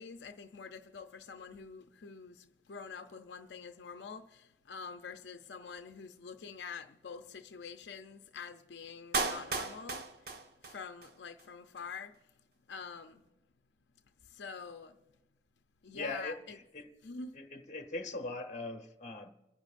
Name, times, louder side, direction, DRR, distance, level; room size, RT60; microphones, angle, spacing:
voice 1, 0.0-10.1 10.6-12.2 12.7-13.2 14.3-15.0 15.8-16.3 17.0-17.3, left 5 dB, 80° left, 0.5 m, -46 dB
Clapping, 9.1-11.1 11.4-11.5, right 4 dB, 60° right, 0.9 m, -35 dB
voice 2, 15.9-16.9 17.3-19.3, left 2 dB, 45° left, 1.0 m, -41 dB
29.5 x 10.5 x 2.5 m
head